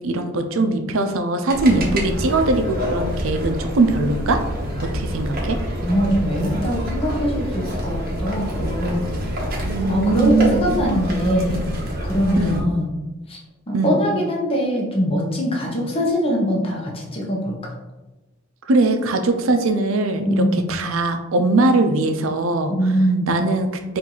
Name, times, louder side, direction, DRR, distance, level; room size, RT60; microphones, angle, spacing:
voice 1, 0.0-4.4 4.8-5.6 9.6-10.8 12.4-12.6 13.7-14.0 18.7-20.4 20.7-22.7 23.3-24.0, right 2 dB, 70° right, 6 dB, 0.5 m, -20 dB
sound 1, 1.5-12.6, equal, 50° right, 0.9 m, -27 dB
voice 2, 1.7-2.0 5.8-9.2 9.9-11.7 12.0-12.9 13.3-13.4 13.7-17.7 20.2-20.7 22.7-23.4, equal, 30° left, -2 dB, 0.8 m, -22 dB
4.5 x 2.6 x 3.9 m, 1.1 s
head